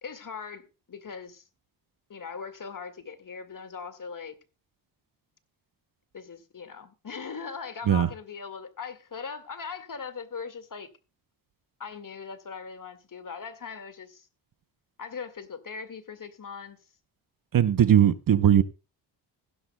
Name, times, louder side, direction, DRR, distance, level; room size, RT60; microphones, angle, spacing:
voice 1, 0.0-1.5 2.1-4.4 6.1-10.9 11.8-14.3 15.0-16.8, left 5 dB, 40° left, 1.9 m, -40 dB
voice 2, 17.5-18.6, right 10 dB, 45° right, 0.8 m, -19 dB
15.5 x 12.0 x 2.2 m
supercardioid pair, 55°, 47 cm